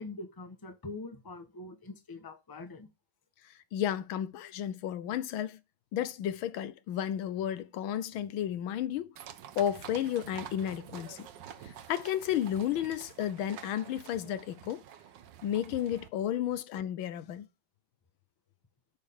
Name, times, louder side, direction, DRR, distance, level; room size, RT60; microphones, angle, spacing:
voice 1, 0.0-2.9, left 3 dB, 15° left, 0.8 m, -43 dB
voice 2, 3.7-5.6 5.9-9.1 9.6-11.3 11.6-14.8 15.4-17.5, left 10 dB, 85° left, 1.6 m, -32 dB
sound 1, 9.2-16.1, right 10 dB, 70° right, 1.4 m, -48 dB
9.7 x 6.6 x 3.7 m
omnidirectional pair, 2.2 m